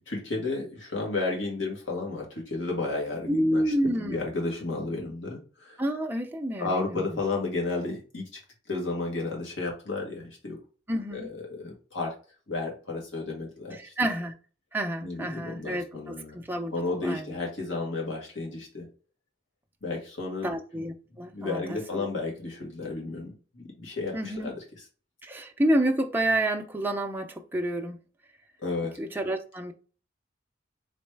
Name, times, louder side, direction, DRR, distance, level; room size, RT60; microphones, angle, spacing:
voice 1, 0.1-5.8 6.6-8.4 8.7-10.6 11.1-12.1 12.5-13.9 15.0-16.4 16.7-18.9 19.8-20.5 21.3-24.6 28.6-29.0, left 3 dB, 85° left, -1 dB, 1.9 m, -32 dB
voice 2, 3.3-4.3 5.8-7.2 10.9-11.3 13.7-14.3 14.7-17.4 20.4-22.1 24.1-24.5 25.2-28.0 29.0-29.7, right 1 dB, 10° right, 2 dB, 0.5 m, -29 dB
4.2 x 3.1 x 3.3 m, 0.36 s
head